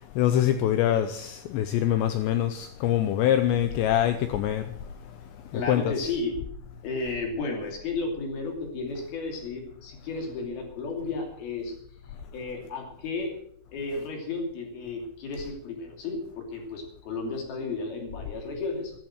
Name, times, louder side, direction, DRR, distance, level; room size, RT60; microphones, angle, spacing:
voice 1, 0.2-4.6 5.5-5.8, left 11 dB, 80° left, 2.6 m, -24 dB
voice 2, 5.5-6.3 6.8-11.8 12.3-13.4 13.7-18.9, left 3 dB, 55° left, 4.3 m, -33 dB
14.0 x 11.5 x 6.3 m
omnidirectional pair, 5.8 m